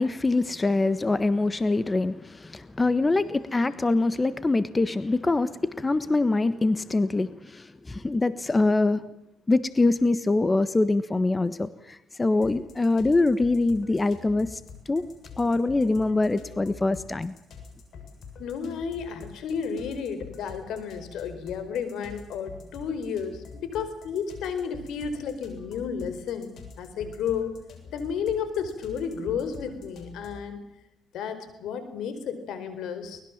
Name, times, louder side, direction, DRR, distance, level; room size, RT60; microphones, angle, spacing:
voice 1, 0.0-9.0 9.5-14.6 14.9-15.1 15.4-17.3, left 2 dB, 20° left, 1.3 m, -24 dB
sound 1, 12.4-30.5, left 5 dB, 65° left, 7.2 m, -46 dB
voice 2, 18.4-27.6 27.9-30.6 31.1-33.2, left 6 dB, 80° left, 4.6 m, -32 dB
23.5 x 20.5 x 7.4 m
cardioid pair, 90°, 0 cm